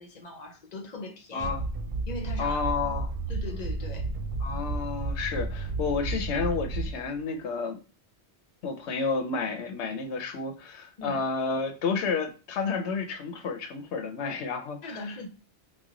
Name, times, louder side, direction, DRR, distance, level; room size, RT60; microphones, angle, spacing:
voice 1, 0.0-1.5 2.1-2.7 3.3-4.1 11.0-11.2 14.8-15.3, left 2 dB, 50° left, 0.6 m, -39 dB
voice 2, 1.3-1.6 2.4-3.1 4.4-7.8 8.6-15.1, left 4 dB, 85° left, 0.9 m, -31 dB
sound 1, 1.4-7.2, right 2 dB, 70° right, 0.3 m, -32 dB
3.1 x 2.2 x 3.6 m
omnidirectional pair, 1.1 m